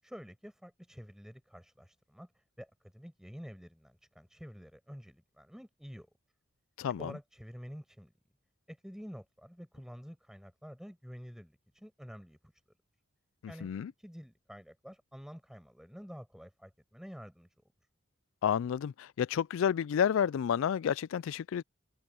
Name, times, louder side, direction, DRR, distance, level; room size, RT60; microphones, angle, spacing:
voice 1, 0.0-6.1 7.0-8.1 8.7-12.4 13.5-13.7 14.0-17.5, equal, ahead, 5.7 m, -49 dB
voice 2, 6.8-7.1 13.6-13.9 18.4-21.6, left 8 dB, 70° left, 0.3 m, -30 dB
head